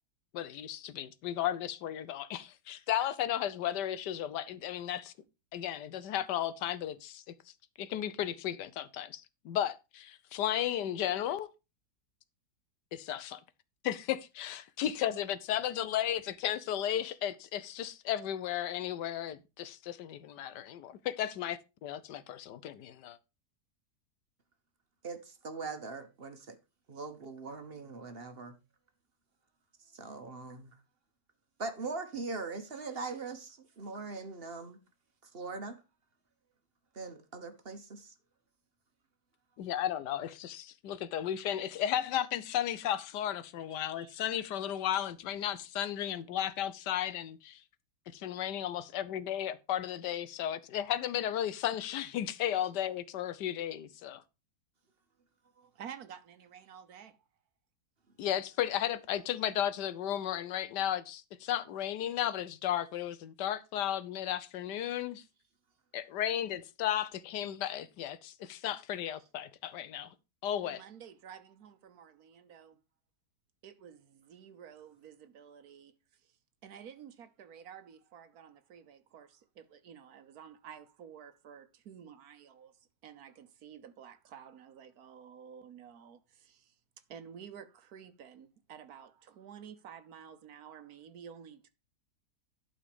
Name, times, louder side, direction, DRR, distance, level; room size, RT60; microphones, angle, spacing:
voice 1, 0.3-5.1 5.5-7.2 7.8-11.5 12.9-13.4 13.8-23.2 39.6-47.6 48.1-54.2 58.2-65.2 65.9-70.1 70.4-70.8, left 11 dB, 90° left, 1.4 m, -34 dB
voice 2, 25.0-26.6 26.9-28.6 29.9-30.7 31.6-34.8 35.3-35.8 36.9-38.1 43.9-44.1, right 4 dB, 40° right, 1.2 m, -41 dB
voice 3, 55.7-57.2 70.6-72.8 73.6-76.3 76.6-82.7 83.0-86.7 87.1-91.7, right 8 dB, 65° right, 1.3 m, -51 dB
11.5 x 4.2 x 5.1 m
omnidirectional pair, 1.8 m